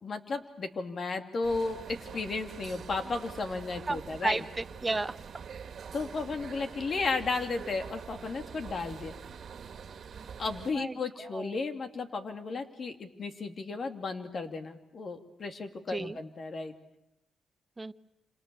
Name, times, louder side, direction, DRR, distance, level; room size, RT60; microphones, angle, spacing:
voice 1, 0.0-4.4 5.9-9.2 10.4-16.7, left 3 dB, 55° left, 6 dB, 2.7 m, -34 dB
sound 1, 1.4-10.7, right 6 dB, 65° right, 1.9 m, -45 dB
voice 2, 3.9-5.2 10.7-11.6 15.9-16.2 17.8-17.9, right 3 dB, 25° right, 12 dB, 1.1 m, -33 dB
28.5 x 27.0 x 7.0 m, 0.91 s
cardioid pair, 70°, 0 cm